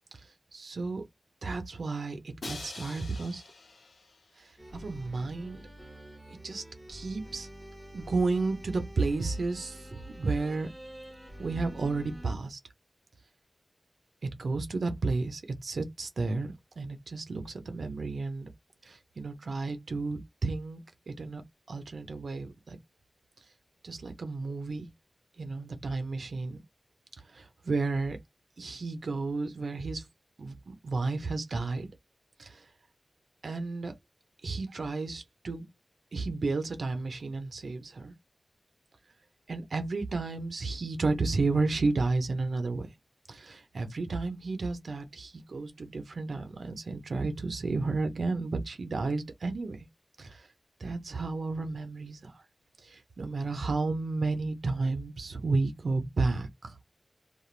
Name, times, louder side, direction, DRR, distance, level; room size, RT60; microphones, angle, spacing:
voice 1, 0.5-1.0 1.4-3.4 4.4-5.6 6.4-6.6 6.9-7.5 7.9-10.7 11.4-12.6 14.2-18.5 18.8-21.4 21.7-22.8 23.8-24.9 25.4-26.6 27.3-28.2 28.6-30.1 30.4-31.9 32.4-32.6 33.4-34.0 34.4-35.7 36.1-38.1 39.5-42.9 43.3-49.8 50.2-50.5 50.8-52.4 52.8-56.8, right 3 dB, 85° right, 0.5 m, -32 dB
Crash cymbal, 2.4-4.4, left 3 dB, 90° left, 0.6 m, -45 dB
sound 1, 4.6-12.3, equal, ahead, 0.9 m, -47 dB
2.4 x 2.2 x 3.1 m
wide cardioid pair, 75°, 0 cm